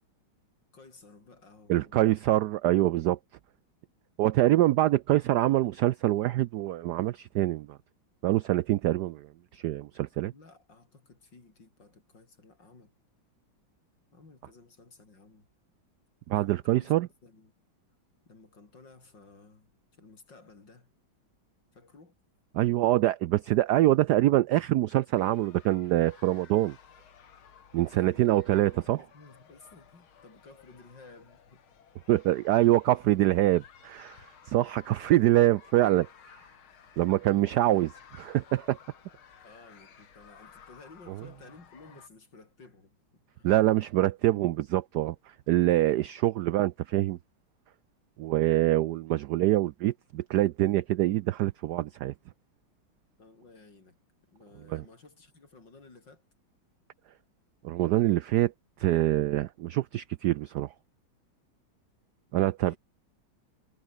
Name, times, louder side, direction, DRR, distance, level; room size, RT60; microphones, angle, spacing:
voice 1, 0.7-2.1 10.3-12.9 14.1-15.5 16.3-16.9 17.2-17.5 18.3-20.9 21.7-22.2 27.9-31.6 39.4-43.0 43.3-43.5 53.2-54.0 54.3-56.2 62.6-62.8, left 3 dB, 60° left, 5.2 m, -54 dB
voice 2, 1.7-3.2 4.2-7.8 8.2-9.3 9.5-10.3 16.3-17.1 22.5-26.8 27.7-29.0 32.1-36.1 37.0-37.9 38.2-38.8 43.4-45.1 45.5-47.2 48.2-52.1 54.7-54.8 57.6-58.5 58.8-60.7 62.3-62.7, right 15 dB, 75° right, 0.9 m, -25 dB
sound 1, 25.2-42.1, left 7 dB, 85° left, 2.7 m, -56 dB
omnidirectional pair, 2.2 m